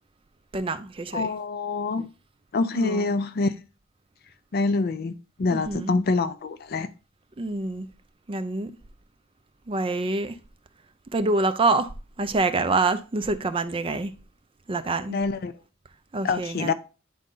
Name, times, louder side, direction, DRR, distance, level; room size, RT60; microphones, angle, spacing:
voice 1, 0.5-1.3 2.7-3.1 5.5-5.9 7.4-7.9 8.3-8.7 9.7-10.4 11.1-11.9 12.2-14.1 14.7-15.2 16.1-16.7, right 3 dB, 25° right, 0.5 m, -26 dB
voice 2, 1.1-2.1 2.5-3.5 4.5-5.1 5.4-6.9 15.1-15.5 16.2-16.7, left 3 dB, 50° left, 0.4 m, -25 dB
9.3 x 3.9 x 3.8 m
head